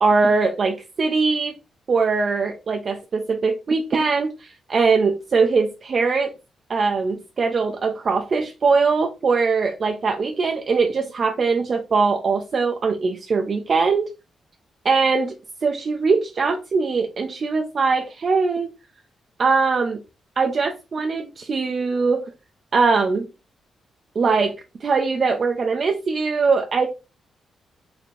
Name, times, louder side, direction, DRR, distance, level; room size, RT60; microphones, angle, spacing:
voice 1, 0.0-1.5 1.9-6.3 6.7-14.1 14.8-15.3 15.6-18.7 19.4-20.0 20.4-22.3 22.7-23.3 24.2-24.5 24.8-26.9, right 4 dB, 35° right, 0.4 m, -21 dB
4.2 x 2.7 x 3.0 m
wide cardioid pair, 160°, 0 cm